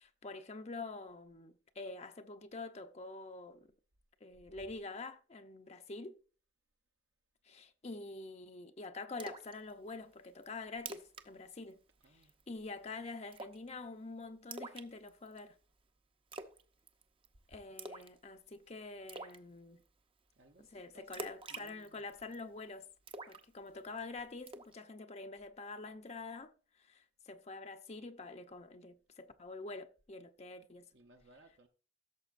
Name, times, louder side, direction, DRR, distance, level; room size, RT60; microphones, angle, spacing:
voice 1, 0.0-3.7 4.2-6.2 7.4-11.8 12.5-15.6 17.5-19.8 20.6-22.8 23.3-26.5 26.8-30.9, left 3 dB, 35° left, 0.7 m, -46 dB
Splash splatter, 9.2-9.5 9.9-10.0 10.4-10.5 10.8-11.3 11.5-11.7 12.0-12.4 13.3-13.7 14.5-15.4 16.3-16.6 16.9-17.3 17.8-18.2 18.5-18.6 19.1-19.4 21.1-22.4 23.1-24.0 24.5-24.7, right 3 dB, 30° right, 0.7 m, -46 dB
voice 2, 12.0-12.4 17.5-17.8 20.4-22.1 30.9-31.7, right 1 dB, 65° right, 0.9 m, -63 dB
16.0 x 7.1 x 2.5 m
head